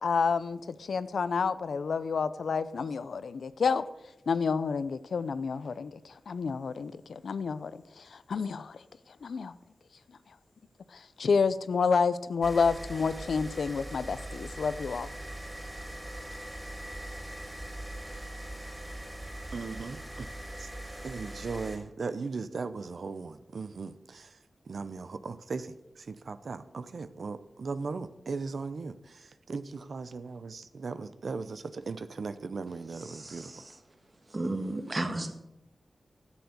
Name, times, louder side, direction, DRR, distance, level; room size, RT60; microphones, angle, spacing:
voice 1, 0.0-3.8 4.3-7.7 8.0-8.8 9.2-9.5 10.9-15.1, left 5 dB, 85° left, 14 dB, 0.5 m, -29 dB
sound 1, 12.4-21.8, right 1 dB, 10° right, 3.7 m, -41 dB
voice 2, 19.5-20.3 20.6-20.7 21.0-24.4 24.7-33.5, right 4 dB, 65° right, 12 dB, 0.6 m, -38 dB
voice 3, 33.1-33.7 34.3-35.3, right 2 dB, 35° right, 7 dB, 1.4 m, -34 dB
11.5 x 7.1 x 6.7 m, 0.91 s
wide cardioid pair, 95°, 0 cm